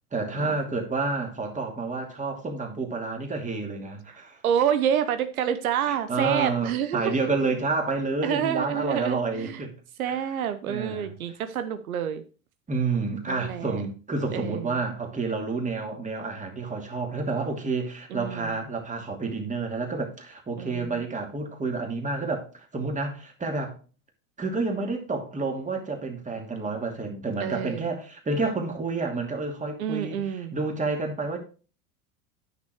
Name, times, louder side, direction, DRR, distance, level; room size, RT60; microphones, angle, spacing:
voice 1, 0.1-4.4 5.9-9.7 10.1-10.4 10.7-11.1 12.7-22.4 22.7-23.8 24.4-30.2 30.5-31.4, right 3 dB, 20° right, 2.7 m, -29 dB
voice 2, 4.4-7.1 8.2-9.6 10.0-12.2 13.3-13.8 14.3-14.8 18.1-18.5 20.6-21.0 27.4-27.9 29.8-30.5, right 9 dB, 85° right, 0.9 m, -28 dB
10.0 x 6.0 x 4.6 m
hypercardioid pair, 100°, 41 cm